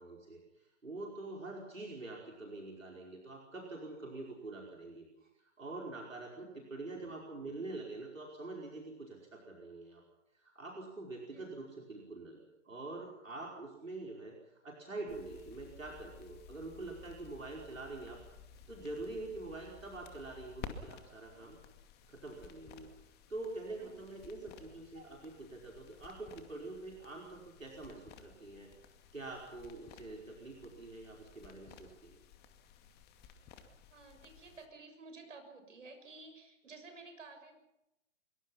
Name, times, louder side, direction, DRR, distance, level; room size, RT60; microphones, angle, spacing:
voice 1, 0.0-10.0 10.3-18.2 18.7-21.6 22.1-22.9 23.3-32.2, right 2 dB, 85° right, -1 dB, 5.1 m, -45 dB
voice 2, 6.1-6.6 11.3-11.6 23.7-24.0 33.9-37.5, right 3 dB, 70° right, 5 dB, 6.8 m, -53 dB
sound 1, 15.1-34.7, left 7 dB, 25° left, 2.3 m, -55 dB
24.5 x 23.0 x 5.8 m, 0.90 s
figure-of-eight pair, 120°, 38 cm